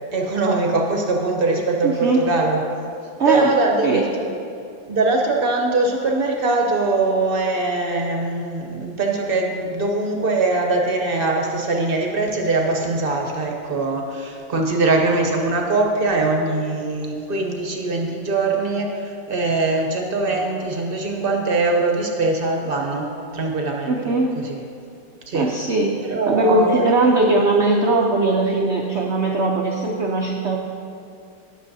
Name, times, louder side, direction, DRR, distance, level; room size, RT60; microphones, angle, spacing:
voice 1, 0.1-2.6 3.3-4.2 4.9-24.1 24.4-24.6 25.3-25.5 26.0-26.9, right 3 dB, 50° right, 1 dB, 0.7 m, -22 dB
voice 2, 1.8-2.2 3.2-3.5 3.8-4.0 23.9-24.3 25.3-25.9 26.3-30.6, right 2 dB, 85° right, 0 dB, 0.6 m, -19 dB
18.5 x 6.5 x 2.7 m, 2.5 s
omnidirectional pair, 2.1 m